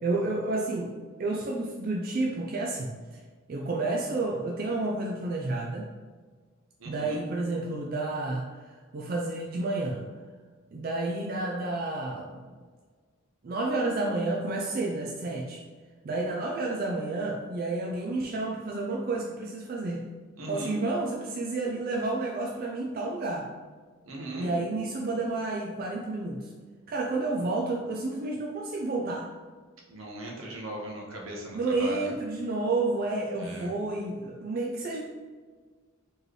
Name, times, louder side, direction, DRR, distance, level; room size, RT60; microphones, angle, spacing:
voice 1, 0.0-0.9 1.2-3.2 3.5-5.9 6.8-10.0 10.7-12.4 13.4-15.6 16.0-20.1 20.5-23.5 24.3-26.5 26.9-29.3 31.5-35.0, right 2 dB, 45° right, -1 dB, 0.4 m, -30 dB
voice 2, 6.8-7.2 20.4-20.8 24.0-24.5 29.9-32.1 33.4-33.7, right 1 dB, 75° right, -2 dB, 1.0 m, -39 dB
4.4 x 3.2 x 3.1 m, 1.5 s
head